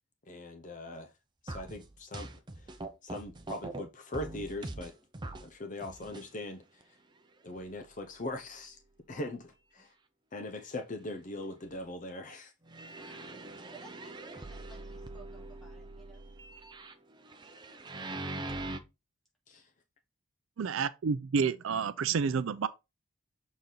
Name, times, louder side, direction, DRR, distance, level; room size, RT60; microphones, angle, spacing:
voice 1, 0.3-1.1 1.4-2.3 3.0-4.9 5.4-6.6 7.4-8.8 9.1-9.9 10.3-12.5 19.5-19.6, left 1 dB, 40° left, 0.7 m, -40 dB
sound 1, 1.5-3.8 4.1-5.5 5.8-6.3 6.8-6.9 7.6-7.7 8.2-8.3 12.7-18.8, right 2 dB, 20° right, 0.7 m, -42 dB
voice 2, 12.9-13.4 13.7-16.3, right 3 dB, ahead, 2.6 m, -56 dB
voice 3, 20.6-22.7, right 6 dB, 75° right, 0.4 m, -29 dB
6.6 x 4.1 x 3.8 m
head